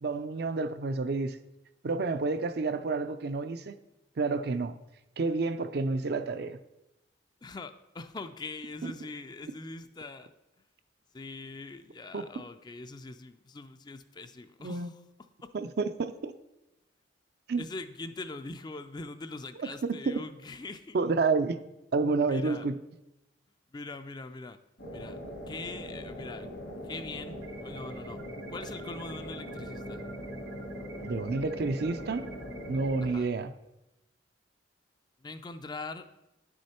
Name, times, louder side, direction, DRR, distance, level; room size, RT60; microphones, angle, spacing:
voice 1, 0.0-1.4 1.8-3.7 4.2-4.7 5.2-6.6 8.8-8.9 12.1-12.3 14.6-14.9 15.5-16.3 17.5-17.6 19.6-19.7 20.1-20.2 20.9-21.6 21.9-22.8 31.0-32.3 32.7-33.5, right 3 dB, 55° right, 11 dB, 0.5 m, -29 dB
voice 2, 7.4-10.3 11.1-15.0 15.4-15.5 17.6-21.0 22.3-22.7 23.7-24.6 24.9-25.2 25.5-26.5 26.8-28.2 28.5-30.0 33.0-33.3 35.2-36.1, left 3 dB, 20° left, 10 dB, 0.4 m, -42 dB
sound 1, 24.8-33.1, equal, 80° left, 2.1 m, -41 dB
sound 2, 27.4-33.2, right 5 dB, 85° right, 0.8 m, -52 dB
10.0 x 6.4 x 4.3 m, 0.95 s
head